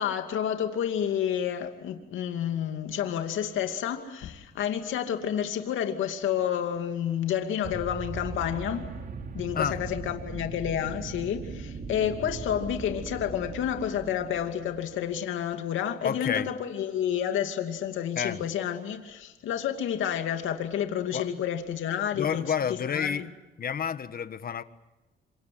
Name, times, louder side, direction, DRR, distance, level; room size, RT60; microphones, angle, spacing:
voice 1, 0.0-8.9 9.3-22.4 22.8-23.3, left 9 dB, 80° left, 5 dB, 2.6 m, -30 dB
sound 1, 7.6-15.4, right 4 dB, 45° right, 2.9 m, -39 dB
voice 2, 16.0-16.5 18.1-18.4 21.1-21.3 22.1-23.3 23.6-24.6, left 7 dB, 50° left, 12 dB, 1.5 m, -29 dB
27.0 x 25.0 x 7.8 m, 1.1 s
cardioid pair, 90°, 20 cm